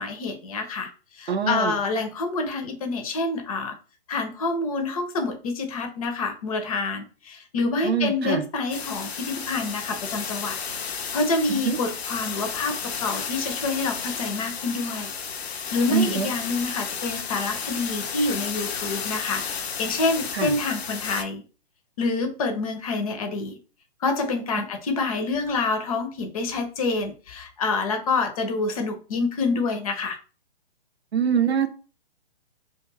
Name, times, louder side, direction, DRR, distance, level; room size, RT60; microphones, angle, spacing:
voice 1, 0.0-3.7 4.1-10.6 11.1-15.1 15.7-21.4 22.0-23.6 24.0-30.2, left 3 dB, 35° left, 6 dB, 0.5 m, -27 dB
voice 2, 1.3-1.7 7.8-8.4 11.5-11.8 15.9-16.3 20.3-20.5 31.1-31.7, right 7 dB, 85° right, 9 dB, 0.6 m, -23 dB
sound 1, 8.7-21.2, left 6 dB, 85° left, 0.5 m, -32 dB
2.3 x 2.3 x 3.1 m, 0.36 s
figure-of-eight pair, 130°, 31 cm